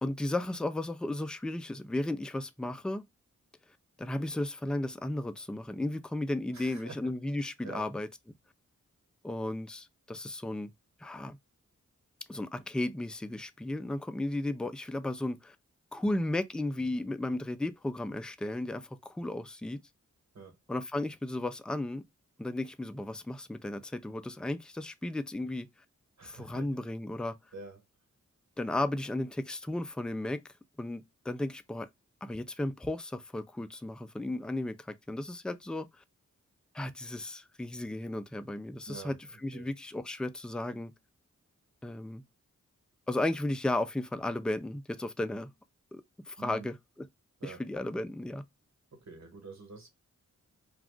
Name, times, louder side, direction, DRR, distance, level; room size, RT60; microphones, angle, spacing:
voice 1, 0.0-3.1 4.0-8.1 9.2-10.7 11.0-11.4 12.3-15.6 15.9-19.8 20.7-22.0 22.4-25.7 26.2-27.4 28.6-30.4 30.8-31.9 32.2-36.0 36.7-39.2 39.4-40.9 41.8-42.2 43.1-45.5 45.9-46.7 47.4-48.4, left 1 dB, 5° left, 0.3 m, -34 dB
voice 2, 6.5-7.1 7.6-7.9 20.3-20.5 26.2-26.7 27.5-27.8 38.9-39.1 39.5-39.7 46.4-46.7 47.4-47.6 48.9-49.9, right 3 dB, 60° right, 1.3 m, -46 dB
2.4 x 2.3 x 3.6 m
cardioid pair, 50°, 31 cm